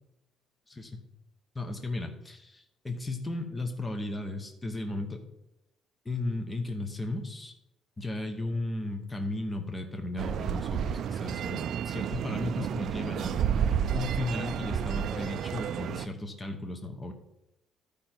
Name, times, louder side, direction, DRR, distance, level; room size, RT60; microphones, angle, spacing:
voice 1, 1.5-5.2 6.0-7.5 8.0-13.4 13.9-17.1, left 2 dB, 10° left, 5 dB, 0.9 m, -35 dB
sound 1, 10.2-16.1, right 8 dB, 45° right, 0.3 m, -31 dB
12.5 x 5.1 x 4.4 m, 0.86 s
cardioid pair, 160°, 0 cm